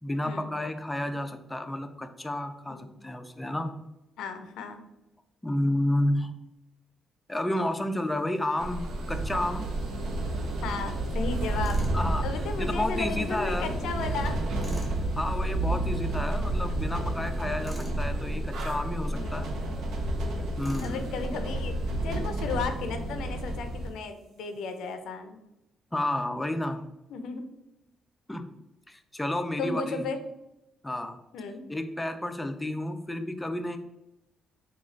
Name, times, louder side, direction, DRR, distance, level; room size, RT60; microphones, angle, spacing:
voice 1, 0.0-3.7 5.4-6.3 7.3-9.7 11.9-12.3 12.6-13.7 15.2-19.6 20.6-21.1 25.9-26.9 28.3-28.5 28.9-30.1 30.8-31.2 31.7-33.8, left 1 dB, 10° left, 8 dB, 0.4 m, -31 dB
voice 2, 4.2-4.8 10.6-11.8 12.2-14.4 16.9-17.0 19.1-19.9 20.8-21.7 22.0-25.4 27.1-27.4 29.6-30.2 31.3-31.6, left 4 dB, 85° left, 7 dB, 0.4 m, -35 dB
sound 1, 8.6-23.9, right 1 dB, 75° right, 0.6 m, -30 dB
Tools, 11.6-12.0 14.6-15.0 17.6-18.0 20.6-21.0, right 1 dB, 20° right, 1.0 m, -42 dB
3.7 x 2.3 x 3.2 m, 0.91 s
cardioid pair, 90°, 0 cm